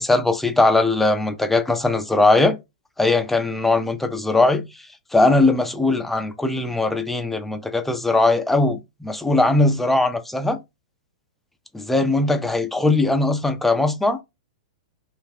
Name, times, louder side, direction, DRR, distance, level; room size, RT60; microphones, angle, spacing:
voice 1, 0.0-2.6 3.0-4.7 5.1-10.6 11.7-14.2, left 2 dB, 5° left, 0.4 m, -20 dB
2.3 x 2.2 x 3.3 m
hypercardioid pair, 110°, 4 cm